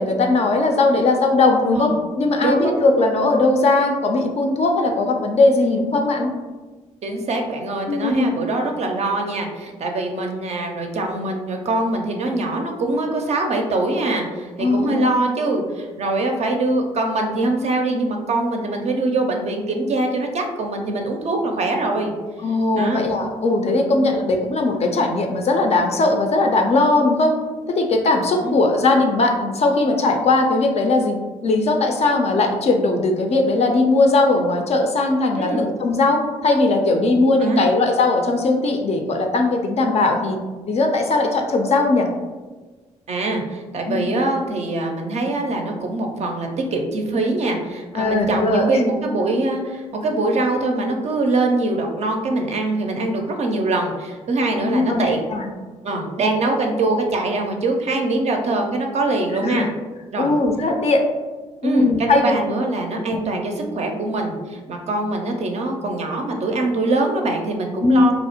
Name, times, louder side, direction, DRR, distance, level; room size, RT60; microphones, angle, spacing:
voice 1, 0.0-6.3 7.9-8.4 14.6-15.1 22.4-27.3 27.7-31.2 31.4-40.4 40.7-42.1 43.9-44.1 47.9-48.8 54.6-55.5 59.4-59.6 60.2-61.0 61.6-62.3 63.1-63.2 67.8-68.1, left 2 dB, 40° left, 3 dB, 0.4 m, -19 dB
voice 2, 2.4-2.9 7.0-22.1 22.7-23.0 23.9-24.1 28.4-28.6 35.4-35.6 37.4-37.7 43.1-55.3 55.8-59.7 60.1-60.3 61.6-68.1, right 2 dB, 45° right, 3 dB, 0.4 m, -23 dB
2.4 x 2.0 x 2.8 m, 1.3 s
hypercardioid pair, 40°, 16 cm